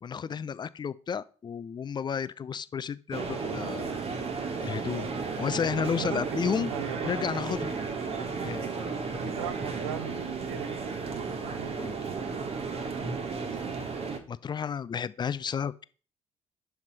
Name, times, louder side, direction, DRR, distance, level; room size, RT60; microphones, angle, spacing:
voice 1, 0.0-3.9 4.6-5.1 5.4-6.7 7.0-7.7 8.4-8.7 11.8-12.0 13.7-15.8, left 7 dB, 30° left, 0.5 m, -32 dB
sound 1, 3.1-14.2, right 4 dB, 40° right, 1.5 m, -34 dB
voice 2, 5.8-7.2 9.3-11.1 11.4-11.9, right 10 dB, 75° right, 0.6 m, -39 dB
7.8 x 5.9 x 4.1 m
figure-of-eight pair, 50°, 15 cm